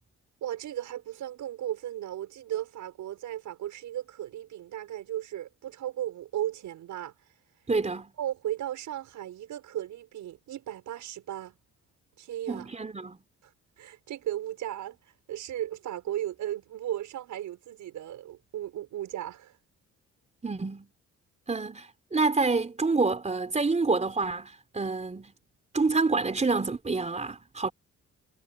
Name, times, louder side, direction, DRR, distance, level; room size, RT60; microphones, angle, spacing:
voice 1, 0.4-7.1 8.2-11.6 12.2-12.7 13.4-13.5 13.8-15.0 15.3-19.5, right 12 dB, 80° right, 7.0 m, -36 dB
voice 2, 7.7-8.1 12.5-13.2 20.4-20.9 21.5-25.3 25.7-27.7, right 3 dB, 25° right, 4.0 m, -27 dB
cardioid pair, 90°, 30 cm